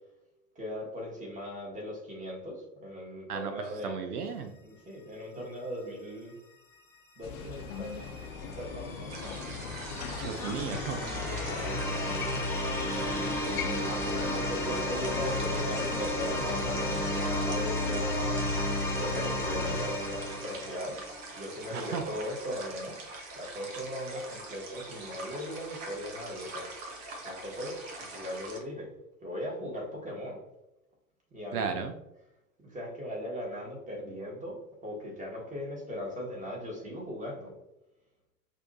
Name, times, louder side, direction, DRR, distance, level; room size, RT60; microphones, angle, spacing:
voice 1, 0.5-4.0 4.6-6.4 7.1-8.0 8.6-9.5 11.6-12.0 13.1-18.5 18.9-21.0 21.3-23.0 23.3-27.0 27.2-28.9 29.2-30.4 31.3-31.8 32.6-37.5, equal, 15° right, -2 dB, 1.5 m, -39 dB
voice 2, 3.8-4.5 10.2-11.1 21.7-22.1 31.5-31.9, right 6 dB, 80° right, 7 dB, 0.6 m, -34 dB
sound 1, 7.2-17.3, left 6 dB, 65° left, 0.7 m, -41 dB
sound 2, 7.4-21.2, left 1 dB, 5° left, 1.2 m, -33 dB
sound 3, 9.1-28.6, right 2 dB, 55° right, 1.2 m, -44 dB
6.2 x 2.6 x 2.6 m, 0.89 s
figure-of-eight pair, 85°, 46 cm